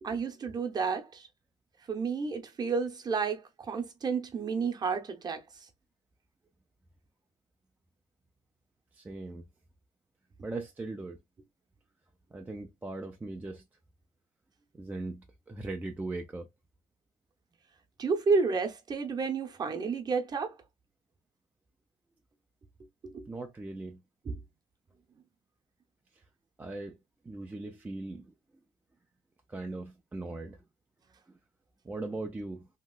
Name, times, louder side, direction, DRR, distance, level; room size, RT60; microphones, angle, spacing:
voice 1, 0.0-1.3 1.9-5.4 18.0-20.6 23.0-23.2 24.3-24.5, right 5 dB, 30° right, 0.8 m, -31 dB
voice 2, 8.9-9.5 10.4-11.2 12.3-13.6 14.7-16.5 23.3-24.0 26.1-26.2 26.6-27.0 27.2-28.3 29.5-30.6 31.3-31.4 31.8-32.7, right 2 dB, 15° right, 0.4 m, -39 dB
3.0 x 2.9 x 2.2 m
cardioid pair, 125°, 13 cm